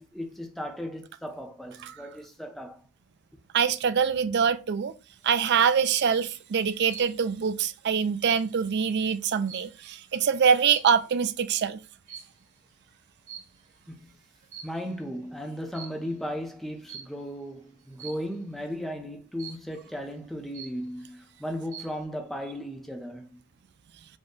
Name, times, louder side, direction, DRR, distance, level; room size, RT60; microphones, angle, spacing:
voice 1, 0.0-2.8 13.9-14.1 14.6-23.4, equal, ahead, 0.6 m, -36 dB
voice 2, 3.5-4.9 5.2-11.8, right 7 dB, 55° right, 0.4 m, -24 dB
sound 1, 5.2-5.8 6.9-7.4 7.8-10.1 10.6-11.1 12.1-12.5 13.3-13.9 14.3-15.0 15.7-16.1 16.9-17.3 18.0-18.4 19.4-19.9 20.3-20.4 20.5-21.1 21.5-22.0, right 8 dB, 35° right, 1.2 m, -45 dB
5.2 x 2.2 x 3.7 m
head